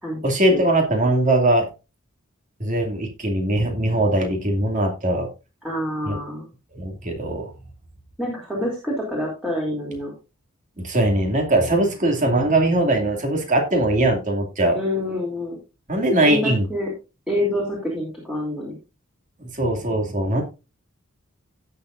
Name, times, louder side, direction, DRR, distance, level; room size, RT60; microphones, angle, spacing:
voice 1, 0.2-1.7 2.6-5.3 6.0-6.2 6.7-7.5 10.8-14.8 15.9-16.7 19.4-20.4, right 1 dB, 35° right, 3 dB, 2.4 m, -20 dB
voice 2, 5.6-6.5 8.2-10.1 14.7-15.6 16.2-16.9 17.3-18.8, left 1 dB, 5° right, -3 dB, 3.1 m, -27 dB
17.0 x 6.9 x 2.6 m, 0.29 s
head